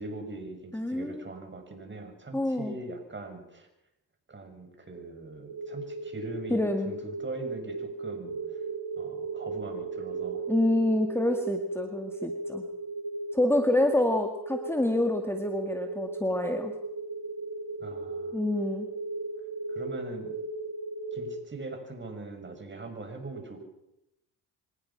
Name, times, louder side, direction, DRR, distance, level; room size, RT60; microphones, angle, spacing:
voice 1, 0.0-3.7 4.3-8.6 9.0-10.4 17.8-18.4 19.7-20.3 21.1-23.6, right 2 dB, 30° right, 5 dB, 6.8 m, -41 dB
voice 2, 0.7-1.3 2.3-2.8 6.5-7.0 10.5-12.7 13.3-16.7 18.3-18.9, left 1 dB, 5° left, 5 dB, 2.1 m, -27 dB
sound 1, 5.5-21.4, right 3 dB, 60° right, 7.6 m, -36 dB
25.0 x 19.5 x 5.9 m, 0.84 s
cardioid pair, 80°, 39 cm